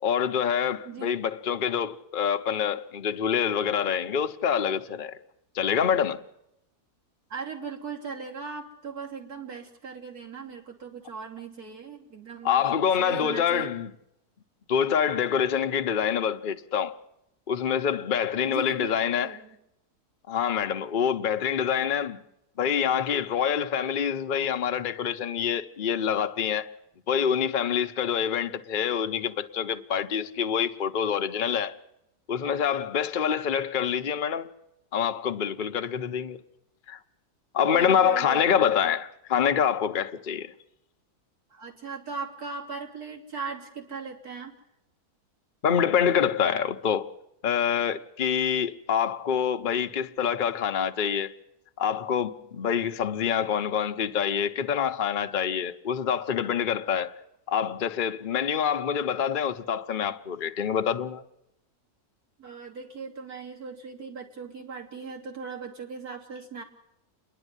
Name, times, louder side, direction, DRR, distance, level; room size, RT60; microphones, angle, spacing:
voice 1, 0.0-5.2 5.5-6.2 12.4-13.9 14.7-17.0 17.5-19.4 20.3-22.2 22.6-26.7 27.1-31.8 32.3-34.5 34.9-36.4 36.9-37.0 37.5-40.5 45.6-47.1 47.4-51.3 51.8-57.1 57.5-61.2, left 8 dB, 40° left, 0.9 m, -26 dB
voice 2, 7.3-12.6 13.0-13.7 18.4-19.6 37.7-38.4 41.5-44.5 62.4-66.6, right 5 dB, 75° right, 3.7 m, -39 dB
28.0 x 11.0 x 9.7 m
omnidirectional pair, 1.6 m